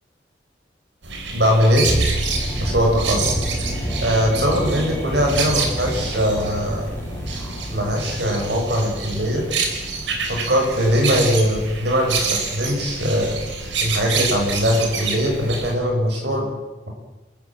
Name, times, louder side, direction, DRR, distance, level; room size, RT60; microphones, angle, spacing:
sound 1, 1.0-15.7, right 4 dB, 80° right, 4.1 m, -28 dB
voice 1, 1.3-1.9 2.6-3.2 4.0-6.9 7.7-9.4 10.3-13.4 13.8-16.5, equal, 60° right, 1 dB, 7.2 m, -21 dB
sound 2, 1.9-11.8 12.1-12.3, equal, 10° left, 4.0 m, -29 dB
29.0 x 13.5 x 7.7 m, 1.1 s
head